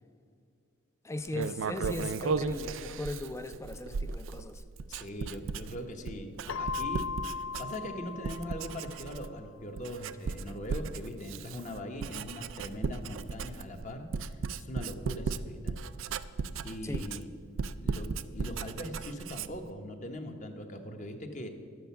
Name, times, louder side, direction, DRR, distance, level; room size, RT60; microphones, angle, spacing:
voice 1, 1.0-4.6 16.8-17.1, left 1 dB, 15° left, 10 dB, 0.4 m, -38 dB
Writing, 1.3-8.0 8.2-9.4 9.8-19.7, right 5 dB, 70° right, 0.4 m, -36 dB
voice 2, 4.9-7.1 7.3-15.8 16.6-17.3 17.8-21.5, left 1 dB, 35° left, 5 dB, 1.0 m, -41 dB
Keyboard (musical), 6.5-9.2, left 5 dB, 75° left, 0.4 m, -38 dB
11.0 x 7.8 x 7.1 m, 2.3 s
head